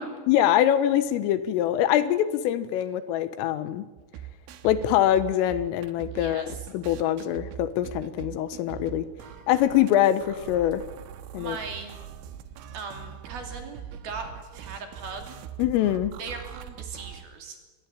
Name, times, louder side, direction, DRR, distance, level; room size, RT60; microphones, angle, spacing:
voice 1, 0.3-3.9 4.7-6.4 6.7-9.1 9.5-10.8 11.3-11.6 15.6-16.2, left 11 dB, 85° left, 12 dB, 3.7 m, -24 dB
sound 1, 4.0-17.2, right 9 dB, 75° right, 3.8 m, -42 dB
voice 2, 6.1-6.7 11.4-12.0 12.7-15.4 16.2-17.6, right 4 dB, 50° right, 4 dB, 4.3 m, -39 dB
24.5 x 22.0 x 9.0 m, 1.2 s
omnidirectional pair, 5.9 m